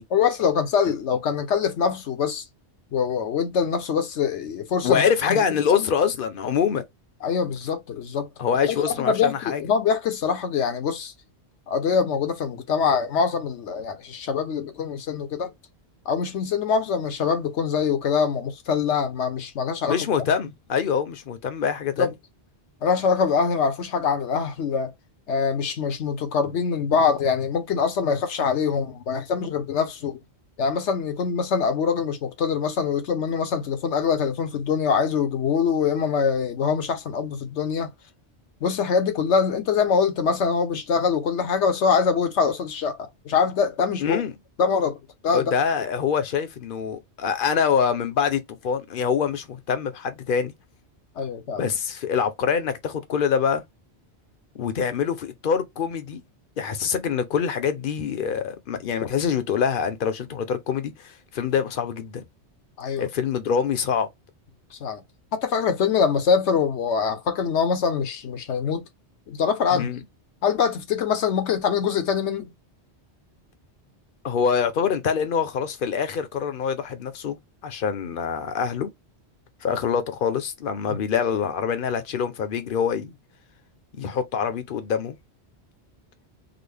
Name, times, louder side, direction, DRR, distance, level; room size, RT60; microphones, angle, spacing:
voice 1, 0.1-2.4 2.9-5.0 5.3-5.4 5.7-5.9 7.2-8.3 8.7-11.1 11.7-15.5 16.1-20.0 22.0-22.1 22.8-24.9 25.3-30.2 30.6-37.9 38.6-44.2 44.6-45.5 51.2-51.6 62.8-63.1 64.7-65.0 65.3-68.8 69.3-69.9 70.4-72.5 80.9-81.0, left 6 dB, 85° left, 1.1 m, -24 dB
voice 2, 4.8-6.8 8.4-9.6 19.8-22.1 44.0-44.3 45.3-50.5 51.6-53.6 54.5-56.2 56.6-62.2 63.0-64.1 69.7-70.0 74.2-77.4 77.6-78.9 79.6-83.2 84.0-85.2, left 7 dB, 55° left, 0.8 m, -25 dB
3.9 x 2.1 x 3.3 m
omnidirectional pair, 1.1 m